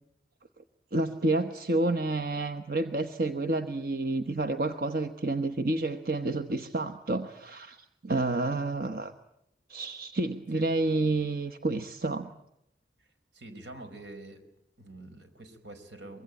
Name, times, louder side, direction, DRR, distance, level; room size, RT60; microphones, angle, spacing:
voice 1, 0.9-9.1 9.7-12.3, right 2 dB, 55° right, 6 dB, 1.2 m, -29 dB
voice 2, 13.3-14.4 14.8-16.2, right 2 dB, 85° right, 7 dB, 4.7 m, -46 dB
24.5 x 23.0 x 9.0 m, 0.78 s
head